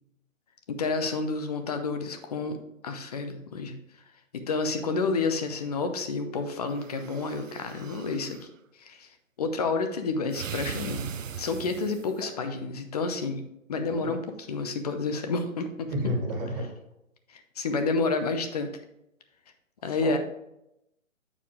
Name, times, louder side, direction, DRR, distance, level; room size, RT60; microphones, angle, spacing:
voice 1, 0.7-2.6 2.8-3.8 4.3-8.4 8.8-9.1 9.4-11.1 11.4-13.4 13.7-15.9 17.6-18.7 19.8-20.2, left 4 dB, 30° left, 7 dB, 0.7 m, -29 dB
sound 1, 6.7-8.5 10.3-12.2, right 8 dB, 70° right, 0.6 m, -39 dB
voice 2, 13.9-14.2 15.9-16.6 20.0-20.2, equal, 30° right, -1 dB, 2.3 m, -30 dB
8.1 x 4.9 x 3.6 m, 0.83 s
figure-of-eight pair, 145°, 40 cm